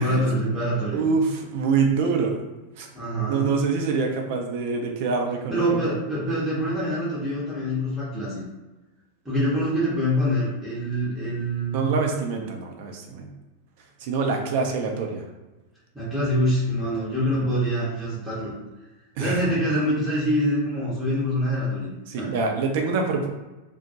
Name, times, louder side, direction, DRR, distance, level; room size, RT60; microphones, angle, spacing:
voice 1, 0.0-1.0 2.9-3.6 5.5-8.4 9.2-11.9 15.9-18.5 19.2-21.9 22.2-22.3, equal, 5° right, -10 dB, 0.8 m, -25 dB
voice 2, 0.9-2.4 2.8-2.9 3.3-5.6 11.7-13.3 14.0-15.2 19.2-19.5 22.1-23.3, right 4 dB, 50° right, 2 dB, 0.4 m, -25 dB
2.3 x 2.1 x 2.7 m, 1.1 s
figure-of-eight pair, 90°, 0 cm